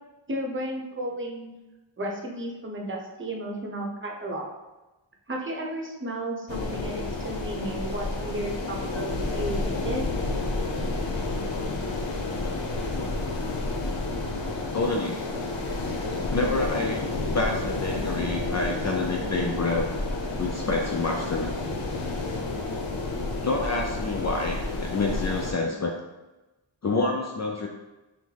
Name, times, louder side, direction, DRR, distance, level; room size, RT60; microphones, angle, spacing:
voice 1, 0.3-1.6 2.0-4.5 5.3-10.0, right 1 dB, 30° right, 0 dB, 0.8 m, -33 dB
sound 1, 6.5-25.5, left 2 dB, 90° left, 0.7 m, -30 dB
voice 2, 14.7-15.2 16.3-19.9 20.4-21.5 23.4-26.0 26.8-27.7, left 3 dB, 40° left, 1 dB, 0.4 m, -28 dB
5.8 x 2.1 x 3.3 m, 1.1 s
wide cardioid pair, 85°, 44 cm